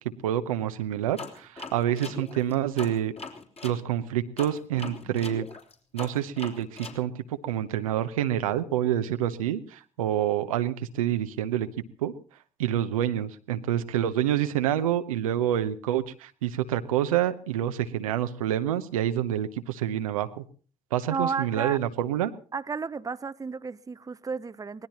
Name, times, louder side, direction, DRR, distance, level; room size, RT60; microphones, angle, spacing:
voice 1, 0.2-3.1 3.6-5.5 5.9-11.7 12.0-12.1 12.6-20.4 20.9-22.3, right 11 dB, 85° right, 0.8 m, -27 dB
sound 1, 1.2-3.8 4.4-7.0, left 4 dB, 35° left, 3.5 m, -40 dB
voice 2, 21.1-21.8 22.5-24.9, right 5 dB, 20° right, 0.7 m, -32 dB
24.5 x 18.5 x 3.0 m
hypercardioid pair, 55°, 17 cm